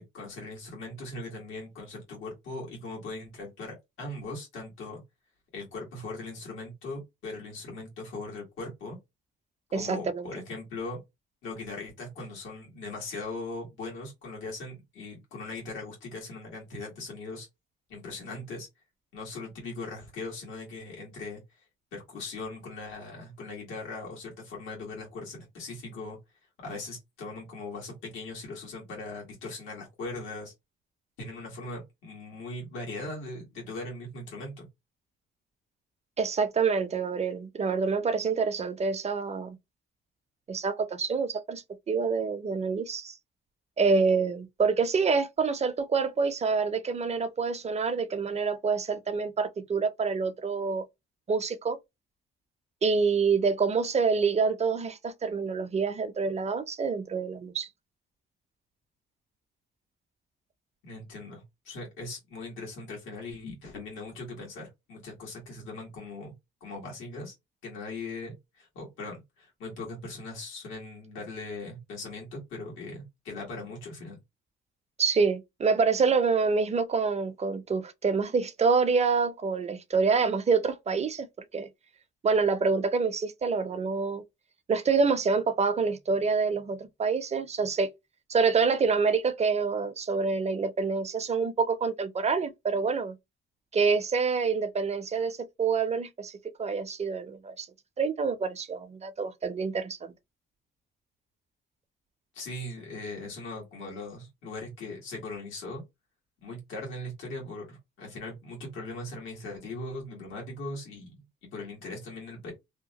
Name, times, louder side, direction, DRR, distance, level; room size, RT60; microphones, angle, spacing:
voice 1, 0.0-5.0 5.5-9.0 9.7-11.0 11.4-17.5 17.9-18.7 19.1-21.6 21.9-26.2 26.6-30.5 31.2-34.7 60.8-66.3 66.6-67.3 67.6-74.2 102.3-105.8 106.4-111.1 111.4-112.5, left 2 dB, 90° left, 1.5 m, -40 dB
voice 2, 9.7-10.3 36.2-39.6 40.5-43.2 43.8-50.8 51.3-51.8 52.8-57.7 75.0-81.3 81.5-81.7 82.2-84.2 84.7-87.9 88.3-93.2 93.7-97.7 98.0-100.1, right 5 dB, 35° right, 0.5 m, -27 dB
2.8 x 2.1 x 2.8 m
cardioid pair, 90°, 20 cm